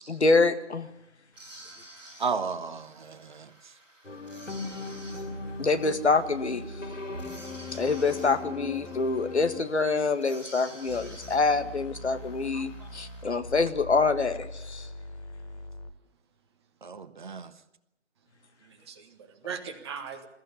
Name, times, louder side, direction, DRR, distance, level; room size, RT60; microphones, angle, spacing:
voice 1, 0.1-0.9 5.6-6.6 7.7-14.9, left 4 dB, 65° left, 9 dB, 1.9 m, -26 dB
sound 1, 1.3-13.4, right 1 dB, 5° right, 6.6 m, -51 dB
voice 2, 2.2-3.7 16.8-17.5, right 5 dB, 40° right, 12 dB, 1.2 m, -34 dB
sound 2, 4.0-9.6, left 3 dB, 85° left, 3.1 m, -38 dB
sound 3, 10.8-15.9, left 1 dB, 30° left, 1.8 m, -42 dB
voice 3, 12.5-12.9 18.6-20.3, right 6 dB, 20° right, 6 dB, 1.7 m, -41 dB
22.0 x 14.5 x 9.9 m, 0.84 s
figure-of-eight pair, 145°, 37 cm